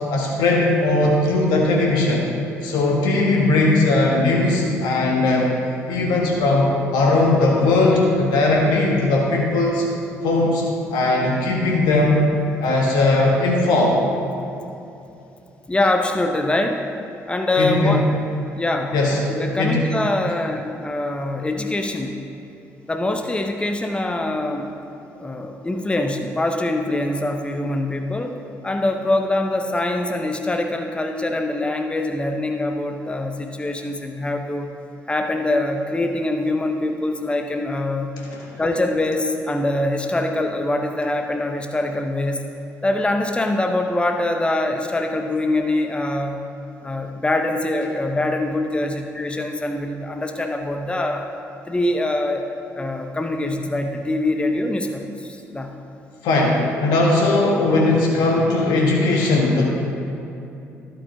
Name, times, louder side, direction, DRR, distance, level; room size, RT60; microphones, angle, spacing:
voice 1, 0.1-2.3 2.6-5.5 5.9-9.9 10.2-10.6 10.9-12.2 12.6-14.0 17.6-18.0 18.9-19.2 19.6-19.9 38.3-38.4 56.2-59.7, left 2 dB, 65° left, -1 dB, 1.1 m, -18 dB
voice 2, 15.7-16.9 17.3-18.1 18.5-18.9 19.3-22.2 22.9-24.7 25.1-28.4 28.6-34.7 35.1-38.1 38.6-42.4 42.8-46.4 46.8-51.3 51.7-52.5 52.8-55.7, left 2 dB, 15° left, 4 dB, 0.7 m, -24 dB
11.5 x 8.4 x 2.7 m, 2.8 s
figure-of-eight pair, 45°, 8 cm